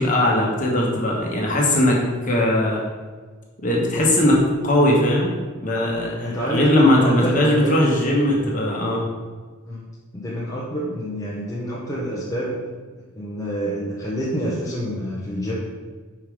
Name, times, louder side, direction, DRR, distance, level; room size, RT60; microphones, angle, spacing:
voice 1, 0.0-2.8 3.6-5.3 5.6-9.0, left 1 dB, 35° left, -2 dB, 1.2 m, -19 dB
voice 2, 6.2-7.8 9.6-9.8 10.1-12.6 13.1-15.5, equal, 15° left, -6 dB, 0.8 m, -27 dB
5.5 x 4.5 x 4.9 m, 1.4 s
head